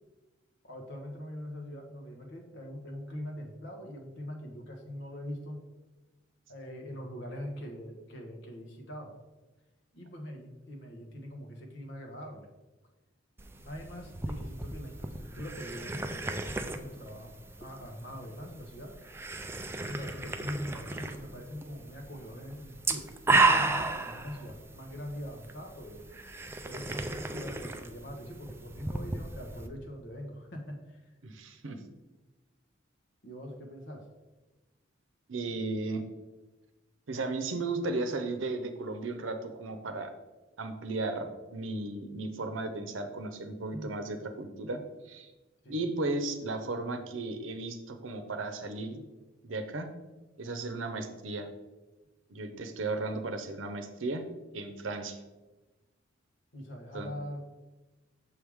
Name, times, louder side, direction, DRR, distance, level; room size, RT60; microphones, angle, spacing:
voice 1, 0.6-5.6 6.5-9.2 9.9-12.5 13.6-18.9 19.9-23.1 23.4-26.0 26.6-31.1 33.2-34.1 43.7-44.0 45.6-45.8 56.5-57.5, equal, 65° left, 2 dB, 1.2 m, -42 dB
sound 1, 13.4-29.7, right 3 dB, 15° right, 0.4 m, -34 dB
voice 2, 31.2-31.8 35.3-36.0 37.1-40.1 40.6-44.8 45.1-45.3 45.7-49.0 49.4-49.9 50.4-51.5 52.3-54.2 54.5-55.2 56.9-57.1, right 2 dB, 85° right, 7 dB, 0.7 m, -35 dB
6.8 x 4.8 x 3.5 m, 1.1 s
head